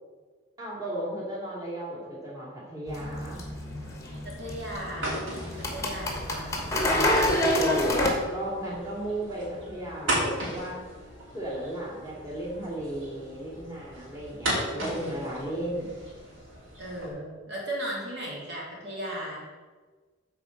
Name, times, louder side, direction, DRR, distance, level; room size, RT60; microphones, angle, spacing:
voice 1, 0.6-3.4 7.5-10.8 11.3-15.9, right 1 dB, 20° right, -7 dB, 2.7 m, -35 dB
sound 1, 2.9-8.1, left 1 dB, 15° left, 1.1 m, -27 dB
sound 2, 2.9-17.1, right 1 dB, 75° right, 2.9 m, -37 dB
voice 2, 4.2-5.3 5.7-6.6 16.8-19.4, right 1 dB, 55° right, -4 dB, 2.8 m, -36 dB
8.1 x 4.3 x 6.5 m, 1.4 s
head